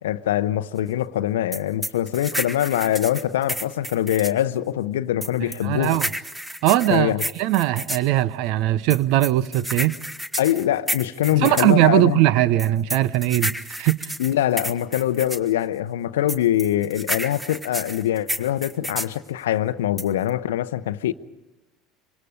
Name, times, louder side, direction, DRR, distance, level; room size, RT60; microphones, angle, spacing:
voice 1, 0.0-6.0 6.9-7.2 10.4-12.2 14.2-21.1, left 12 dB, 75° left, 0.7 m, -23 dB
sound 1, 1.5-4.4 5.2-8.1 8.9-11.7 12.6-15.5 16.3-19.2 20.0-20.3, equal, 10° right, 1.3 m, -30 dB
voice 2, 5.6-6.1 6.6-10.0 11.4-14.1, right 14 dB, 60° right, 0.7 m, -20 dB
25.5 x 25.0 x 5.2 m
figure-of-eight pair, 70°, 0 cm